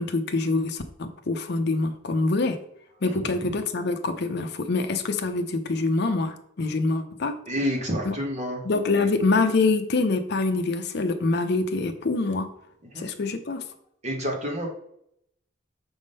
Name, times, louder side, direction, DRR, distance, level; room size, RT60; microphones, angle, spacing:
voice 1, 0.0-2.6 3.0-7.4 8.0-8.2 8.6-12.5 13.0-13.6, left 3 dB, 55° left, 8 dB, 0.6 m, -25 dB
voice 2, 7.5-8.6 8.9-9.1 12.9-13.1 14.0-14.7, equal, 35° right, 1 dB, 1.3 m, -29 dB
6.2 x 3.6 x 5.4 m, 0.74 s
head